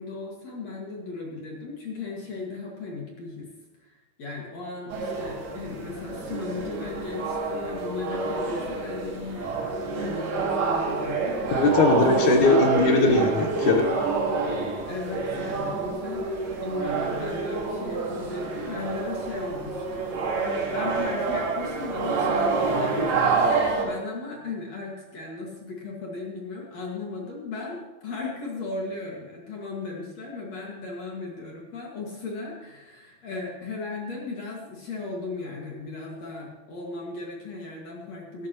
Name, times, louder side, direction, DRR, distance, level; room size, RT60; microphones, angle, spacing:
voice 1, 0.0-3.5 3.9-9.5 10.0-12.4 14.9-20.1 20.7-38.5, left 3 dB, 50° left, -3 dB, 3.0 m, -36 dB
sound 1, 4.9-23.9, right 4 dB, 90° right, 4.4 m, -27 dB
voice 2, 11.5-13.8, left 3 dB, 65° left, 4 dB, 2.2 m, -20 dB
17.5 x 13.5 x 3.1 m, 1.1 s
omnidirectional pair, 4.4 m